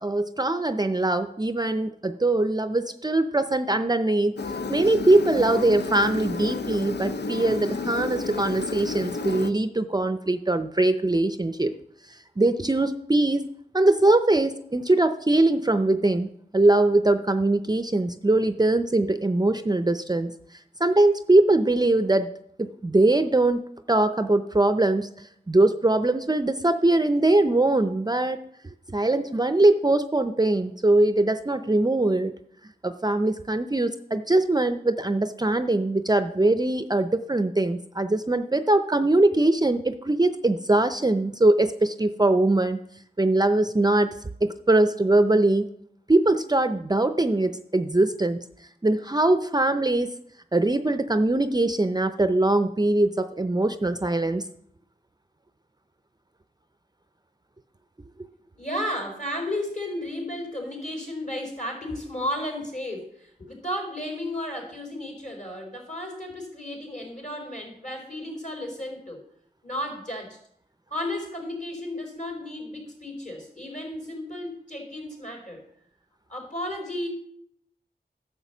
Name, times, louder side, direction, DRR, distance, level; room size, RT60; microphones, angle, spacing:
voice 1, 0.0-4.4 4.7-11.8 12.4-13.4 13.7-20.3 20.8-22.3 22.6-23.6 23.9-28.4 28.9-32.3 32.8-42.8 43.2-44.1 44.4-45.7 46.1-48.4 48.8-50.1 50.5-54.4, right 2 dB, 25° right, 10 dB, 0.5 m, -22 dB
Engine, 4.4-9.5, left 4 dB, 85° left, 0.6 m, -31 dB
voice 2, 58.6-69.2 69.6-70.4 70.9-75.6 76.3-77.1, left 1 dB, 50° left, 2 dB, 4.0 m, -33 dB
11.0 x 5.5 x 7.1 m, 0.70 s
wide cardioid pair, 65°, 17 cm